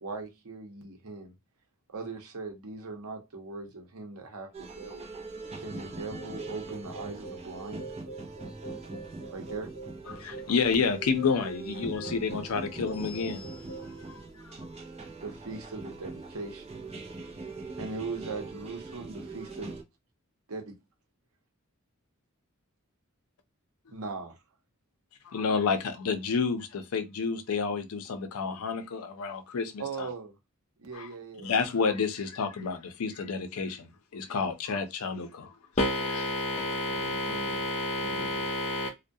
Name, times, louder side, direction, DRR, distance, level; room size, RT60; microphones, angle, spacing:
voice 1, 0.0-1.3 1.9-5.1 5.6-7.9 9.3-9.7 15.2-16.8 17.8-19.8 20.5-20.7 23.9-24.4 29.8-30.3 30.8-31.5 36.6-37.6 38.0-38.5, right 3 dB, 90° right, 0.8 m, -40 dB
sound 1, 4.5-19.8, right 3 dB, 30° right, 0.5 m, -42 dB
sound 2, 6.2-13.9, right 3 dB, 60° right, 1.1 m, -45 dB
voice 2, 10.1-14.5 25.2-30.1 30.9-31.1 31.4-35.6 36.3-36.4, left 5 dB, 90° left, 0.5 m, -30 dB
voice 3, 35.8-38.9, left 1 dB, 30° left, 0.4 m, -30 dB
2.2 x 2.1 x 2.6 m
head